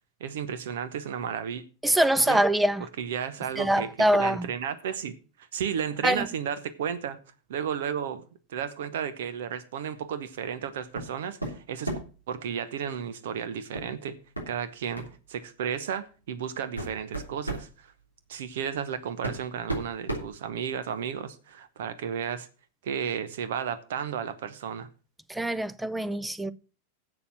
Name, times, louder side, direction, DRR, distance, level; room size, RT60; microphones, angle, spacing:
voice 1, 0.2-1.6 2.3-2.4 3.0-7.2 7.5-12.0 12.3-14.2 14.5-17.9 18.3-22.5 22.8-24.9, right 8 dB, 55° right, 0.9 m, -33 dB
voice 2, 1.8-2.8 3.6-4.5 6.0-6.3 25.3-26.5, right 1 dB, 5° right, 0.6 m, -24 dB
sound 1, 10.9-11.1 11.4-12.2 13.7-13.9 14.3-14.5 14.9-15.2 16.0-16.1 16.6-17.7 18.7-18.8 19.2-21.0, right 2 dB, 85° right, 3.3 m, -34 dB
7.7 x 7.0 x 7.5 m
figure-of-eight pair, 90°, 0 cm